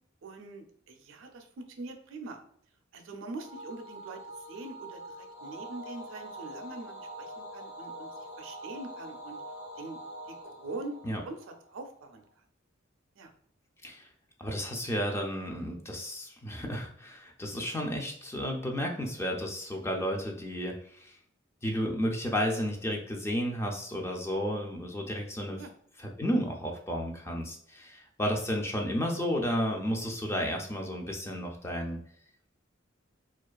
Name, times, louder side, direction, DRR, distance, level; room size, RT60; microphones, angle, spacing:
voice 1, 0.2-2.4 2.9-4.2 4.5-5.0 5.4-8.1 8.4-9.4 9.8-10.0 10.3-12.2 13.2-13.3 25.6-25.7, right 2 dB, 70° right, 5 dB, 0.4 m, -43 dB
sound 1, 3.4-12.0, right 1 dB, 45° left, 1.2 m, -44 dB
voice 2, 14.4-21.1 21.6-25.6 26.0-32.0, equal, 15° left, 1 dB, 0.3 m, -32 dB
2.4 x 2.3 x 2.2 m, 0.63 s
head